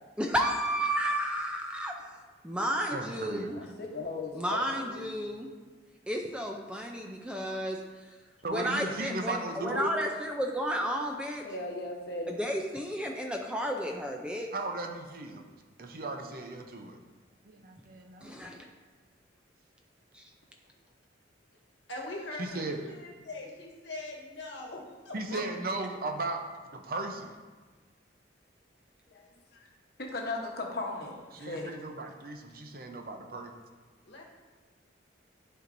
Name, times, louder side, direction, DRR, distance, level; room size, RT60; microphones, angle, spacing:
voice 1, 0.2-1.9 2.4-3.6 4.3-5.5 6.1-7.8 8.5-11.4 12.3-14.5 18.2-18.6 20.1-20.2, equal, 5° right, 1 dB, 0.4 m, -32 dB
voice 2, 2.9-3.6 7.0-7.6 8.4-9.9 14.5-15.4 15.8-17.0 17.4-18.4 22.4-22.8 25.1-26.4 26.7-27.3 31.3-33.5, right 2 dB, 50° right, 4 dB, 0.6 m, -36 dB
voice 3, 3.5-5.1 11.4-12.4 29.1-29.7 30.0-31.7, left 2 dB, 55° left, 0 dB, 1.0 m, -37 dB
voice 4, 21.9-25.4 34.0-34.2, left 2 dB, 70° left, -1 dB, 1.2 m, -41 dB
11.0 x 4.5 x 2.6 m, 1.4 s
head